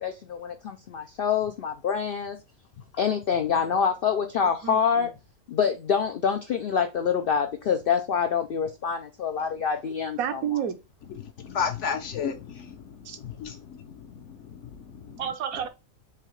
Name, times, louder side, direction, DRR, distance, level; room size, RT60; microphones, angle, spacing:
voice 1, 0.0-2.4 2.9-5.1 5.5-10.4, left 7 dB, 85° left, 0.5 m, -26 dB
voice 2, 10.2-10.8 13.1-13.2 15.2-15.7, right 9 dB, 80° right, 1.1 m, -29 dB
voice 3, 11.1-15.3, left 7 dB, 60° left, 0.9 m, -34 dB
4.9 x 2.8 x 3.1 m
omnidirectional pair, 1.5 m